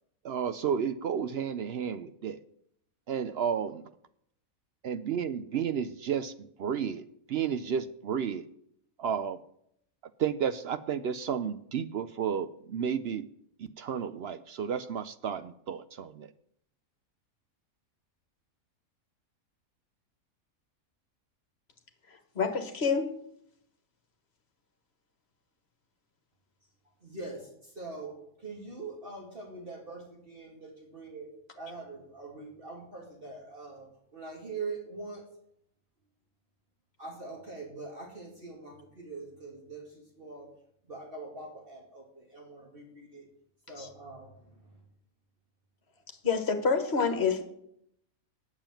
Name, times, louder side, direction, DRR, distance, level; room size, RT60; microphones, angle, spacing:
voice 1, 0.2-2.4 3.1-3.9 4.8-8.4 9.0-9.4 10.2-13.3 13.6-16.3, right 7 dB, 65° right, 12 dB, 0.6 m, -32 dB
voice 2, 22.1-23.2 43.8-43.9 46.2-47.4, left 5 dB, 45° left, 6 dB, 1.7 m, -28 dB
voice 3, 27.0-31.3 31.5-33.9 34.1-35.2 37.0-40.5 40.9-43.3 43.7-44.8, right 3 dB, 40° right, -1 dB, 2.6 m, -43 dB
8.9 x 7.3 x 8.9 m, 0.72 s
omnidirectional pair, 1.5 m